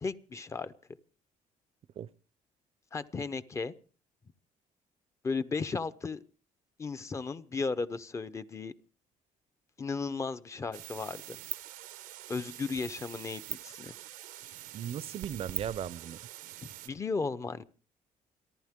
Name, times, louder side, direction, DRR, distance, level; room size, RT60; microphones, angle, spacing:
voice 1, 0.0-0.7 2.9-3.7 5.2-6.2 6.8-8.7 9.8-11.4 12.3-13.9 16.6-17.6, left 4 dB, 20° left, 0.8 m, -35 dB
sound 1, 10.7-16.9, right 14 dB, 85° right, 0.9 m, -43 dB
voice 2, 14.7-16.2, right 9 dB, 45° right, 0.6 m, -37 dB
29.0 x 11.5 x 3.7 m
cardioid pair, 155°, 14 cm